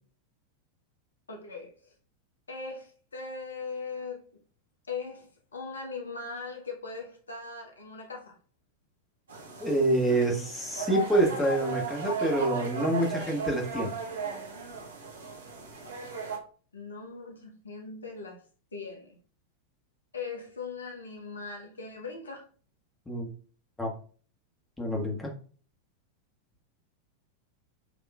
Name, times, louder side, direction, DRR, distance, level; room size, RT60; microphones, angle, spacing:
voice 1, 1.3-1.9 2.5-4.3 4.9-8.4 16.7-18.4 18.7-19.2 20.1-22.4, left 4 dB, 75° left, 1 dB, 0.9 m, -40 dB
sound 1, 9.3-16.4, right 4 dB, 65° right, 0.9 m, -36 dB
voice 2, 9.6-13.9 23.1-23.3 23.8-23.9 24.8-25.3, right 1 dB, 10° left, -1 dB, 1.3 m, -27 dB
6.8 x 2.9 x 2.4 m, 0.41 s
figure-of-eight pair, 90°, 0 cm